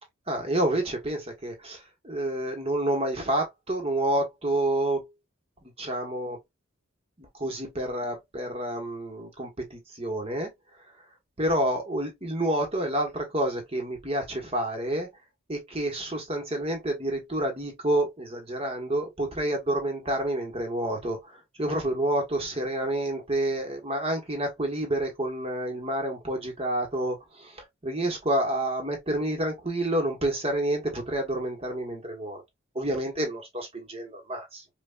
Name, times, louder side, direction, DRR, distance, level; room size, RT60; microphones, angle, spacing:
voice 1, 0.3-5.1 5.6-6.4 7.2-10.5 11.4-15.1 15.5-32.4 32.7-34.6, right 1 dB, 30° right, 1.2 m, -29 dB
5.6 x 2.5 x 2.4 m
head